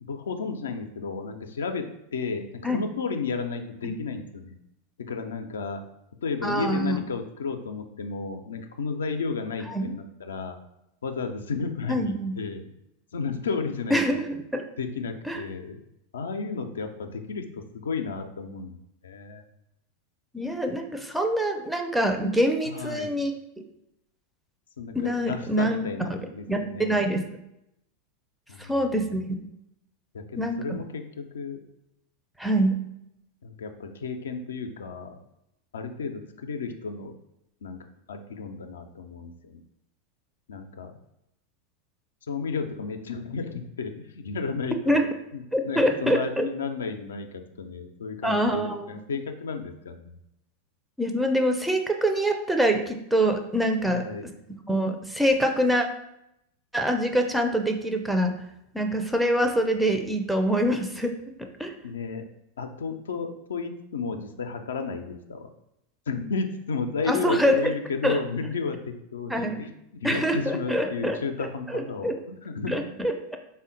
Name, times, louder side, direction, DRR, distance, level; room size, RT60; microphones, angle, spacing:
voice 1, 0.0-1.9 2.1-4.5 5.0-5.8 6.2-10.6 11.0-12.6 13.1-14.2 14.8-15.8 16.1-18.8 19.0-19.4 22.7-23.2 24.8-27.0 28.5-29.1 30.1-31.6 33.4-35.2 35.7-37.1 37.6-37.8 38.1-39.6 40.5-41.0 42.3-45.0 45.3-50.2 53.8-54.3 61.8-62.2 62.6-65.5 66.1-69.7 70.0-72.7, left 5 dB, 75° left, 6 dB, 0.3 m, -33 dB
voice 2, 6.4-7.0 9.7-9.9 11.9-12.4 13.9-14.6 15.3-15.4 20.3-23.3 24.9-26.2 26.5-27.3 28.6-29.4 30.4-30.8 32.4-32.8 44.9-45.1 45.5-46.5 48.2-48.9 51.0-54.3 54.7-55.9 56.7-58.3 58.7-61.7 67.1-67.7 68.0-68.2 69.3-69.6 70.0-71.2 71.7-72.2 72.7-73.4, equal, 5° right, 5 dB, 0.4 m, -25 dB
3.6 x 2.1 x 3.8 m, 0.82 s
hypercardioid pair, 90°, 0 cm